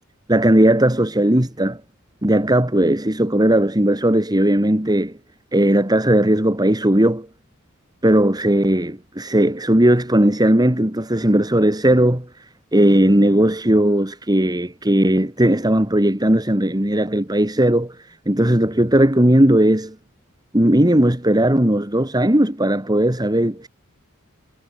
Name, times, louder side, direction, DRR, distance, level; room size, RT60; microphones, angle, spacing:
voice 1, 0.3-1.8 2.2-5.2 5.5-7.3 8.0-12.3 12.7-17.9 18.3-19.9 20.5-23.7, right 1 dB, 20° right, 2.5 m, -17 dB
head